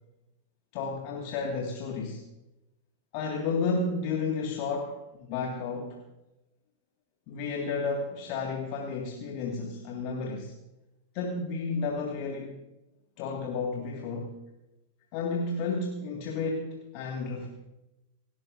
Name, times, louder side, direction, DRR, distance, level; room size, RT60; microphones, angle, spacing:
voice 1, 0.7-2.2 3.1-6.0 7.3-10.5 11.1-12.6 13.2-14.3 15.1-17.5, left 4 dB, 45° left, 1 dB, 1.8 m, -32 dB
28.5 x 12.0 x 2.6 m, 0.95 s
figure-of-eight pair, 90°, 0 cm